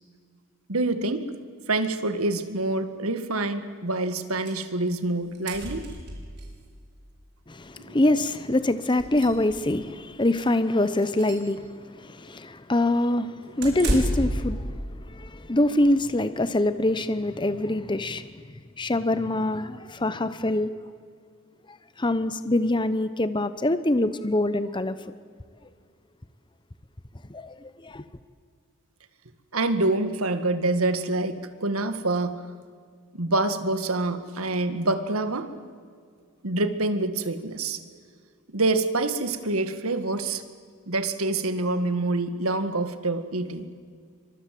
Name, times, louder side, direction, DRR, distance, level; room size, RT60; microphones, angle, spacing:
voice 1, 0.7-1.3 1.7-5.9 7.8-8.0 29.5-32.4 33.1-35.5 36.4-37.8 38.5-40.4 40.9-43.7, right 2 dB, 80° right, 1.9 m, -26 dB
sound 1, 4.5-4.6 4.9-5.0 5.2-6.5 7.7-7.8 8.2-8.3 8.8-9.8 10.2-10.5 10.9-11.5 13.6-14.4, right 1 dB, 50° right, 6.1 m, -31 dB
voice 2, 7.5-14.7 15.1-18.3 18.8-20.7 22.0-25.1 27.3-28.0, left 1 dB, 20° left, 0.8 m, -25 dB
28.0 x 25.0 x 7.7 m
head